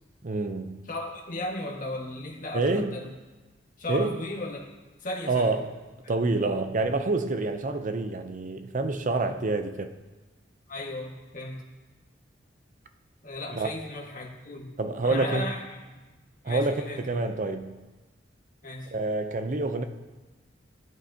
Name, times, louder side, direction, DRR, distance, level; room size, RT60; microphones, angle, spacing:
voice 1, 0.2-0.8 2.5-3.0 3.9-4.2 5.3-5.7 6.1-9.9 13.5-13.7 14.8-15.5 16.4-17.8 18.9-19.8, right 3 dB, 45° right, 8 dB, 0.6 m, -27 dB
voice 2, 0.9-3.1 3.8-4.7 5.0-5.6 6.0-6.8 10.7-11.6 13.2-14.7 15.0-15.8 16.4-17.1 18.6-18.9, left 1 dB, 45° left, -1 dB, 1.7 m, -36 dB
16.0 x 9.0 x 2.8 m, 1.2 s
head